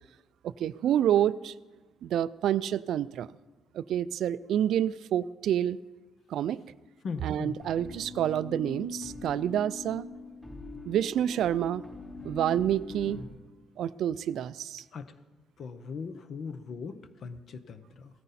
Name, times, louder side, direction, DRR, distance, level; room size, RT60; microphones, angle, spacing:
voice 1, 0.4-1.5 2.0-3.3 3.7-5.8 6.3-6.6 7.2-10.1 10.9-11.8 12.2-13.2 13.8-14.8, right 10 dB, 65° right, 17 dB, 0.3 m, -28 dB
voice 2, 7.0-7.6 14.9-15.1 15.6-18.1, left 5 dB, 45° left, 12 dB, 0.7 m, -39 dB
sound 1, 7.6-13.2, left 3 dB, 5° left, 3.0 m, -42 dB
16.5 x 14.0 x 4.2 m, 1.3 s
cardioid pair, 150°, 0 cm